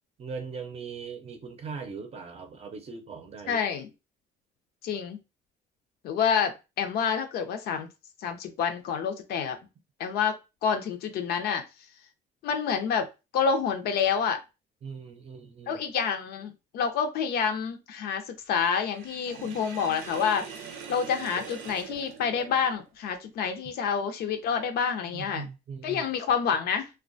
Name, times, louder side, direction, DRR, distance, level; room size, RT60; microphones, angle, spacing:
voice 1, 0.2-3.6 14.8-15.8 25.0-26.1, right 5 dB, 35° right, 0.6 m, -40 dB
voice 2, 3.5-3.9 4.8-5.2 6.0-7.9 8.2-9.6 10.0-11.6 12.4-13.1 13.3-14.4 15.7-25.5 25.8-26.9, left 6 dB, 70° left, 0.5 m, -28 dB
Sink (filling or washing), 18.9-22.9, right 6 dB, 80° right, 0.6 m, -42 dB
2.2 x 2.1 x 2.6 m
cardioid pair, 110°, 17 cm